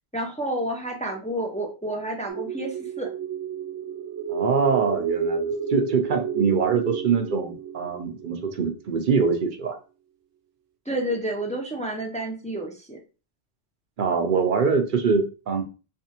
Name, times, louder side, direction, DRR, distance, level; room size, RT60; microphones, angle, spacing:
voice 1, 0.1-3.1 10.9-13.0, right 1 dB, 10° left, 0 dB, 0.4 m, -30 dB
sound 1, 2.3-8.8, right 6 dB, 75° right, 0.9 m, -30 dB
voice 2, 4.3-9.8 14.0-15.6, right 5 dB, 55° right, 5 dB, 0.7 m, -24 dB
3.4 x 3.3 x 2.8 m, 0.33 s
omnidirectional pair, 1.3 m